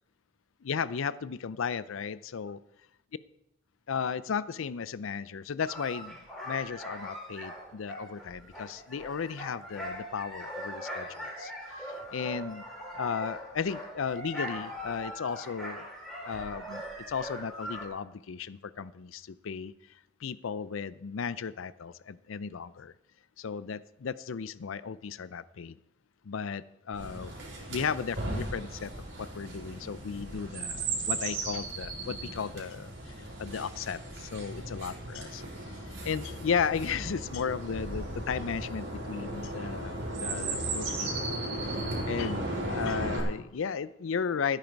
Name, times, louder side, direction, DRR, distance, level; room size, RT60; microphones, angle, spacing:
voice 1, 0.6-2.6 3.9-6.2 6.4-11.5 11.8-12.6 12.9-15.9 16.3-19.7 20.2-22.9 23.4-25.8 26.2-27.3 27.7-28.9 29.2-33.1 33.4-35.4 35.9-41.8 42.1-44.6, left 6 dB, 75° left, 0.5 m, -35 dB
sound 1, 5.6-17.9, equal, 5° left, 4.3 m, -41 dB
Chirp tweet, 26.9-43.2, right 2 dB, 55° right, 4.6 m, -36 dB
16.0 x 9.2 x 4.6 m
head